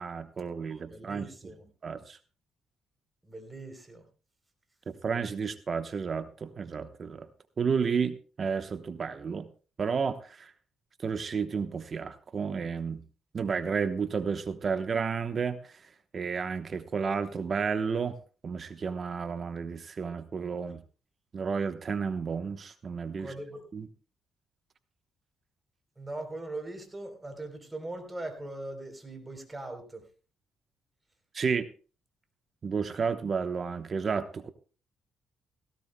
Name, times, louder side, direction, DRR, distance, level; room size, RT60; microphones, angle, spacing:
voice 1, 0.0-1.3 1.8-2.2 4.9-7.3 7.6-9.5 9.8-10.5 11.0-13.0 13.3-18.2 18.4-20.8 21.3-23.3 23.7-23.9 31.3-31.7 32.6-34.5, right 5 dB, 45° right, 10 dB, 1.0 m, -32 dB
voice 2, 0.7-1.7 3.2-4.1 23.2-23.7 26.0-30.1, right 2 dB, 15° right, 6 dB, 3.6 m, -40 dB
17.0 x 16.5 x 2.2 m, 0.36 s
cardioid pair, 90°, 0 cm